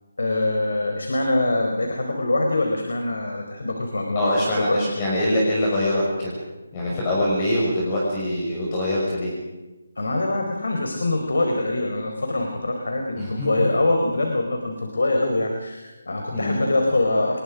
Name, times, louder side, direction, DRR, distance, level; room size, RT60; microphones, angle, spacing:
voice 1, 0.2-5.0 10.0-17.4, left 2 dB, 80° left, 2 dB, 4.7 m, -24 dB
voice 2, 4.1-6.4 6.7-9.3 13.2-13.5 16.3-16.6, left 1 dB, 25° left, -4 dB, 5.9 m, -23 dB
29.5 x 21.5 x 5.1 m, 1.1 s
figure-of-eight pair, 165°, 0 cm